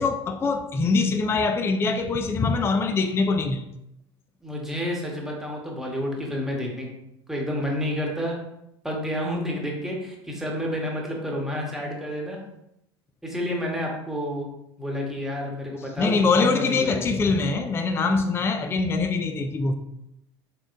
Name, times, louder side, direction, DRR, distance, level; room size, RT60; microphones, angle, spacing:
voice 1, 0.0-3.6 16.0-19.7, left 4 dB, 20° left, 0.3 m, -23 dB
voice 2, 4.4-6.9 7.3-8.4 8.8-12.4 13.2-14.5 14.8-17.2, equal, 5° right, 1.2 m, -29 dB
4.2 x 3.4 x 2.5 m
hypercardioid pair, 75°, 14 cm